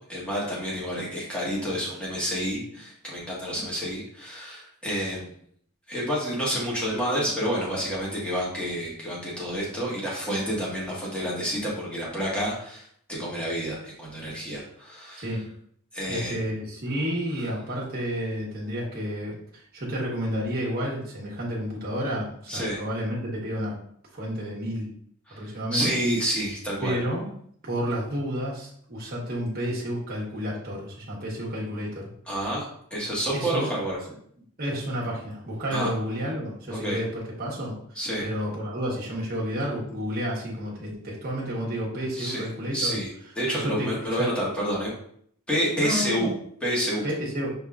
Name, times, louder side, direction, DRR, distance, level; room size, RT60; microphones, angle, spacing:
voice 1, 0.1-5.3 5.9-15.3 15.9-16.4 22.5-22.8 25.3-25.4 25.7-27.0 32.3-32.6 32.9-34.0 35.7-35.9 36.7-37.0 37.9-38.2 42.1-42.5 42.7-43.1 43.4-44.9 45.5-46.3 46.6-47.1, equal, 5° left, -6 dB, 1.5 m, -29 dB
voice 2, 6.9-7.5 15.2-15.4 16.1-23.7 24.1-24.9 25.3-25.9 26.8-27.2 27.6-32.1 33.3-33.7 34.6-43.0 43.5-44.3 45.8-46.3 47.0-47.5, equal, 45° right, -5 dB, 1.2 m, -31 dB
5.3 x 3.6 x 2.4 m, 0.64 s
head